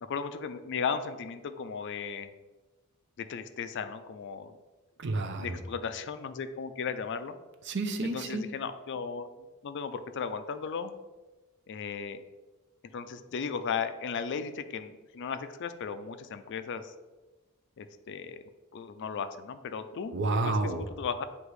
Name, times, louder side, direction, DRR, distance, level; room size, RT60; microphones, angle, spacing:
voice 1, 0.0-2.3 3.2-4.5 5.4-7.4 8.1-9.3 9.6-10.9 11.7-12.2 12.9-16.9 17.8-18.4 18.7-20.1 20.4-21.2, left 6 dB, 55° left, 11 dB, 0.4 m, -36 dB
voice 2, 5.0-5.6 7.7-8.4 20.1-20.9, right 2 dB, 55° right, 7 dB, 0.6 m, -30 dB
8.0 x 2.9 x 4.7 m, 1.2 s
head